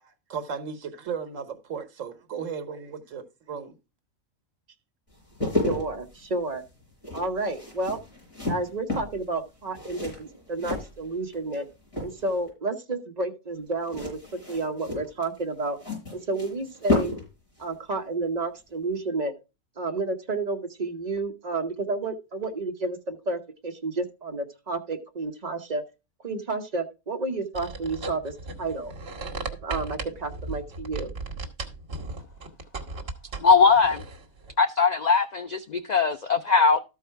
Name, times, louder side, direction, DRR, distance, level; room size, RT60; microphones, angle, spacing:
voice 1, 0.0-3.8, right 6 dB, 75° right, 1.4 m, -36 dB
sound 1, 5.1-11.6 11.9-12.5 13.8-17.3 17.6-17.7, left 2 dB, 25° left, 5.6 m, -32 dB
voice 2, 5.6-6.6 7.1-8.0 8.5-11.7 12.0-14.2 14.5-15.8 16.1-17.1 17.6-19.3 19.8-25.8 26.2-28.9 29.6-31.1, right 3 dB, 35° right, 1.0 m, -30 dB
sound 2, 27.5-34.5, right 3 dB, 50° right, 1.5 m, -36 dB
voice 3, 33.4-34.0 34.6-36.8, left 5 dB, 60° left, 0.4 m, -20 dB
13.0 x 4.7 x 4.5 m
omnidirectional pair, 1.4 m